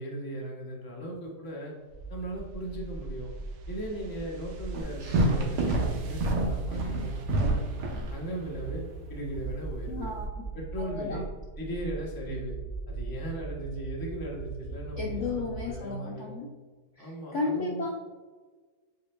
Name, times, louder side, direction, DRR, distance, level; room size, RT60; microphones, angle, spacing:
voice 1, 0.0-1.7 2.1-3.3 3.7-7.7 8.1-8.8 9.1-10.1 10.5-11.2 11.6-12.5 12.9-16.4 17.0-17.9, right 1 dB, 20° left, -2 dB, 0.7 m, -38 dB
sound 1, 1.9-15.8, right 4 dB, 50° right, 1.2 m, -40 dB
sound 2, 2.3-9.5, right 3 dB, 70° right, 1.0 m, -41 dB
sound 3, 4.7-8.1 9.3-10.2, right 2 dB, 85° right, 1.5 m, -27 dB
voice 2, 9.9-10.4 10.8-11.2 15.0-16.5 17.0-17.9, left 3 dB, 65° left, -2 dB, 0.8 m, -34 dB
8.0 x 2.9 x 2.2 m, 1.4 s
omnidirectional pair, 1.7 m